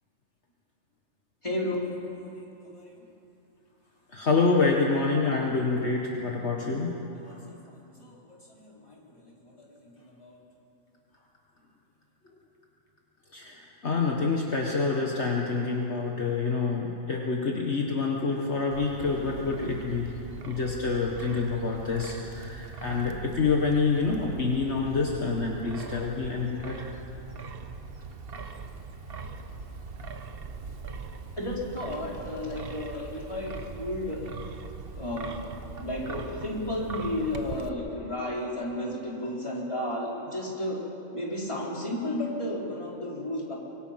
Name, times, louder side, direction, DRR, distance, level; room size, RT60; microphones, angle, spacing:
voice 1, 1.4-3.0 4.6-5.4 7.1-10.4 13.9-14.0 31.4-34.2 35.0-35.3 35.8-40.8 41.1-43.5, left 1 dB, 20° left, -4 dB, 4.1 m, -34 dB
voice 2, 4.1-7.0 7.2-7.3 13.3-20.1 20.4-26.8, left 4 dB, 55° left, -1 dB, 1.8 m, -27 dB
Wind, 18.7-37.7, right 4 dB, 50° right, 1.2 m, -41 dB
25.5 x 22.0 x 5.9 m, 2.9 s
omnidirectional pair, 1.3 m